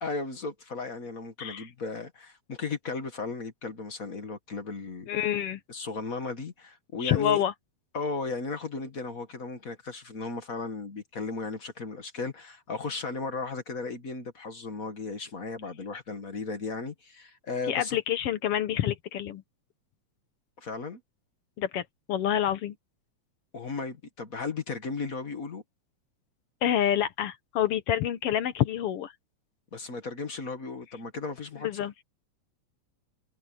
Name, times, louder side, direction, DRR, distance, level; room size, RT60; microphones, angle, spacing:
voice 1, 0.0-5.1 5.7-7.4 7.9-18.0 20.6-21.0 23.5-25.6 29.7-31.7, left 4 dB, 35° left, 1.6 m, -35 dB
voice 2, 5.1-5.6 7.0-7.5 17.7-19.4 21.6-22.7 26.6-29.1 31.6-31.9, left 10 dB, 65° left, 1.6 m, -27 dB
omnidirectional pair, 3.4 m